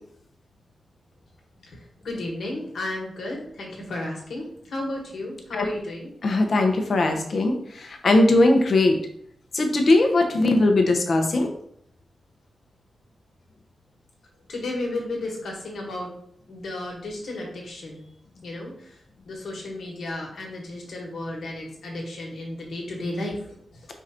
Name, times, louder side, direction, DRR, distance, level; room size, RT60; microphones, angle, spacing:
voice 1, 1.6-6.1 14.5-16.1 16.5-18.1 18.4-19.0 19.2-23.9, left 1 dB, 75° left, -1 dB, 1.4 m, -33 dB
voice 2, 6.2-9.0 9.5-11.5, left 2 dB, 55° left, 4 dB, 0.8 m, -20 dB
4.7 x 2.5 x 4.3 m, 0.68 s
wide cardioid pair, 100°, 0 cm